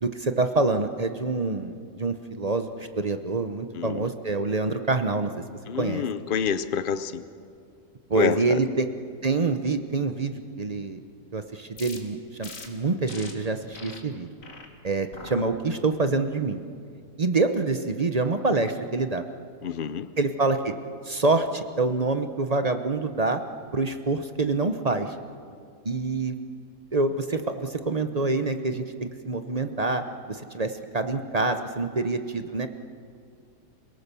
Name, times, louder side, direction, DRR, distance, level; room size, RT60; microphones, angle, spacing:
voice 1, 0.0-5.3 5.7-6.0 8.1-8.9 9.2-11.0 11.3-14.3 14.8-16.6 17.2-19.2 20.2-20.7 21.0-23.4 23.7-25.1 25.8-26.4 26.9-32.7, right 3 dB, 40° right, 8 dB, 0.5 m, -26 dB
voice 2, 3.7-4.1 5.7-7.2 8.1-8.6 19.6-20.1, left 7 dB, 75° left, 13 dB, 0.4 m, -28 dB
sound 1, 11.8-12.0 12.4-12.7 13.1-13.3 13.7-14.0 14.4-14.7 15.1-15.4 15.9-16.3, left 3 dB, 50° left, 2.5 m, -42 dB
28.0 x 18.0 x 6.9 m, 2.3 s
omnidirectional pair, 1.9 m